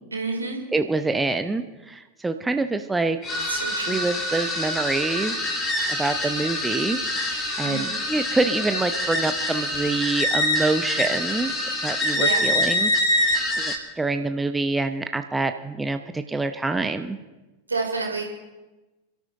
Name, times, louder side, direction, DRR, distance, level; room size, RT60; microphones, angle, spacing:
voice 1, 0.1-0.6 3.5-4.0 7.6-7.8 12.1-12.4 17.7-18.2, right 3 dB, 80° right, 1 dB, 3.4 m, -28 dB
voice 2, 0.7-3.2 3.9-5.4 6.0-17.2, right 3 dB, 10° right, 8 dB, 0.7 m, -26 dB
sound 1, 3.2-13.8, left 1 dB, 25° left, 3.6 m, -25 dB
27.5 x 13.0 x 3.8 m, 1.1 s
figure-of-eight pair, 90°, 0 cm